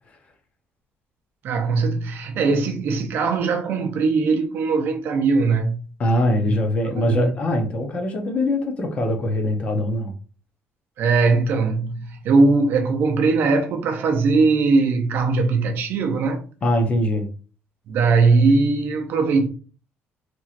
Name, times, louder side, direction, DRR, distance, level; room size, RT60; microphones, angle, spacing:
voice 1, 1.4-5.8 6.5-6.6 6.8-7.3 11.0-16.4 17.9-19.5, right 4 dB, 55° right, 0.5 m, -20 dB
voice 2, 6.0-10.1 16.6-17.3, left 1 dB, 30° left, 0.6 m, -22 dB
2.9 x 2.8 x 2.4 m
cardioid pair, 175°, 4 cm